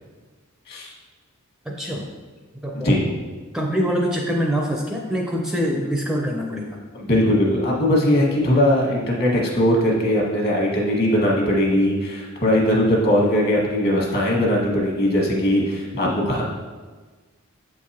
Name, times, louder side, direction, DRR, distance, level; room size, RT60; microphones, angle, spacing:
voice 1, 1.7-2.1 2.6-3.0 3.5-6.8, equal, 5° right, -1 dB, 0.4 m, -24 dB
voice 2, 6.9-16.5, left 1 dB, 50° left, -2 dB, 1.4 m, -20 dB
7.7 x 4.6 x 2.8 m, 1.4 s
head